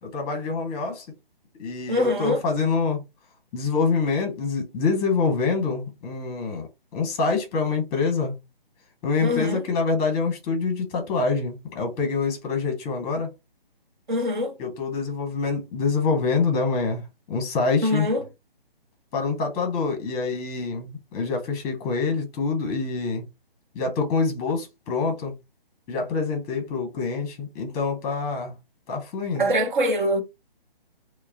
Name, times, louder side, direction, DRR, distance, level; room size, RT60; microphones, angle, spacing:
voice 1, 0.0-1.1 1.6-3.0 3.5-6.7 6.9-8.4 9.0-13.3 14.6-18.1 19.1-23.3 23.7-25.3 25.9-28.5 28.9-29.5, left 4 dB, 15° left, 0.9 m, -26 dB
voice 2, 1.9-2.4 9.2-9.6 14.1-14.5 17.8-18.2 29.4-30.2, equal, 55° right, 1.0 m, -23 dB
4.5 x 2.2 x 2.8 m
figure-of-eight pair, 140°, 29 cm